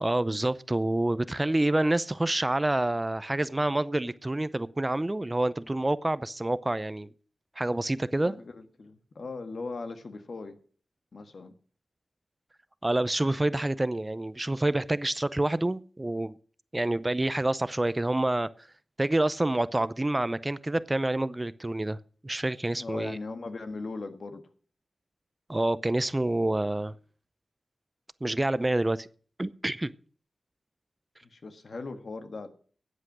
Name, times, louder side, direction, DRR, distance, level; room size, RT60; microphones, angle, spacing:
voice 1, 0.0-7.1 7.6-8.3 12.8-16.3 16.7-18.5 19.0-22.0 22.2-23.2 25.5-26.9 28.2-29.1 29.4-29.9, right 1 dB, 25° right, 0.6 m, -27 dB
voice 2, 8.2-10.6 11.1-11.5 22.8-24.4 31.2-32.5, left 3 dB, 65° left, 1.6 m, -39 dB
13.0 x 8.3 x 6.1 m
cardioid pair, 60°, 0 cm